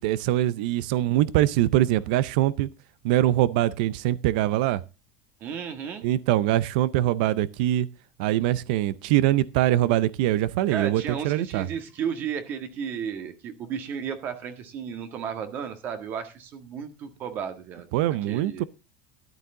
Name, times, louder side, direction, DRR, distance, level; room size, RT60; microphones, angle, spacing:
voice 1, 0.0-2.7 3.0-4.8 6.0-7.9 8.2-11.7 17.9-18.6, right 14 dB, 75° right, 0.6 m, -23 dB
voice 2, 5.4-6.0 10.7-17.9 18.3-18.6, right 7 dB, 45° right, 1.7 m, -33 dB
13.5 x 9.5 x 3.8 m
supercardioid pair, 135°, 5 cm